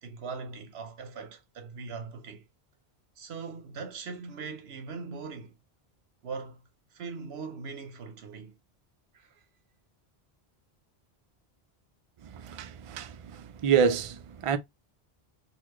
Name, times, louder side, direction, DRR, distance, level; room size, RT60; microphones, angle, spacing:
voice 1, 0.0-2.4 3.2-5.5 6.2-6.6 6.9-8.6 9.1-9.3, right 5 dB, 75° right, 1.1 m, -40 dB
voice 2, 12.2-14.6, right 7 dB, 60° right, 0.3 m, -28 dB
4.1 x 2.4 x 2.9 m
omnidirectional pair, 1.1 m